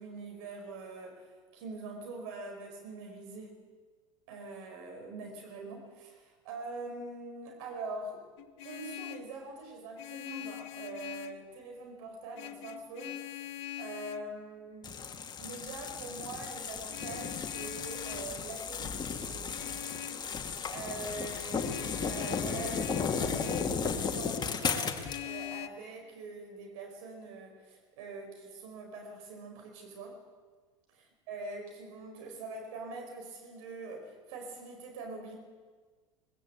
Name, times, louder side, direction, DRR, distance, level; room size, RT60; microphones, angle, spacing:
voice 1, 0.0-3.6 4.3-8.2 8.6-13.4 13.8-15.0 15.4-19.5 20.7-30.2 30.9-35.4, right 3 dB, 55° right, 3 dB, 4.9 m, -43 dB
Vehicle horn car horn honking, 8.4-9.3 10.0-11.5 12.3-14.3 16.9-18.3 19.5-20.2 21.6-23.8 25.0-25.7, left 13 dB, 55° left, 1.4 m, -43 dB
sound 1, 14.8-25.2, left 6 dB, 25° left, 2.4 m, -35 dB
23.0 x 21.0 x 8.2 m, 1.4 s
figure-of-eight pair, 75°, 17 cm